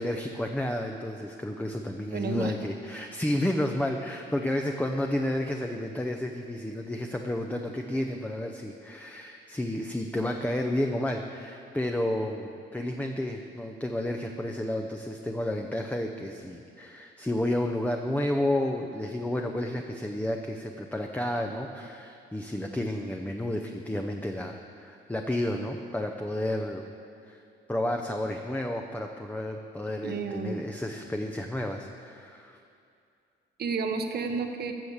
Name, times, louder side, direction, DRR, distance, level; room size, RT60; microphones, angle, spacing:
voice 1, 0.0-26.8 27.2-27.4 27.7-32.6, left 1 dB, 10° left, 3 dB, 0.7 m, -31 dB
voice 2, 2.1-2.5 30.0-30.6 33.6-34.7, right 4 dB, 55° right, 5 dB, 1.0 m, -31 dB
13.5 x 6.5 x 7.2 m, 2.5 s
cardioid pair, 90°, 20 cm